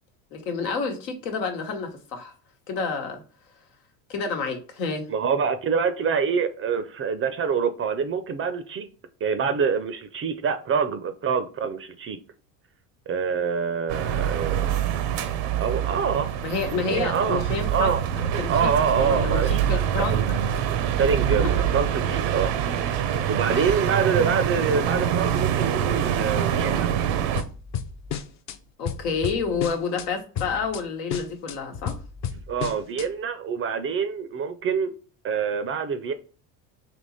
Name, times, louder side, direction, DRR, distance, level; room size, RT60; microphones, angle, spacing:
voice 1, 0.3-2.3 2.7-3.2 4.1-5.1 16.4-17.9 18.4-19.4 19.7-20.6 23.5-23.7 24.2-24.3 28.8-32.0, left 5 dB, 85° left, 1.2 m, -29 dB
voice 2, 5.1-8.9 9.2-12.2 13.1-14.7 15.6-16.3 16.8-17.4 17.7-18.0 18.5-20.2 20.7-22.5 23.3-26.9 32.5-34.9 35.2-36.1, right 6 dB, 30° right, 0.4 m, -26 dB
sound 1, 13.9-27.4, right 9 dB, 85° right, 0.7 m, -25 dB
sound 2, 27.3-28.6 28.8-30.1 30.3-30.8 31.1-33.1, left 8 dB, 35° left, 0.5 m, -32 dB
3.5 x 2.9 x 4.1 m
supercardioid pair, 95°, 48 cm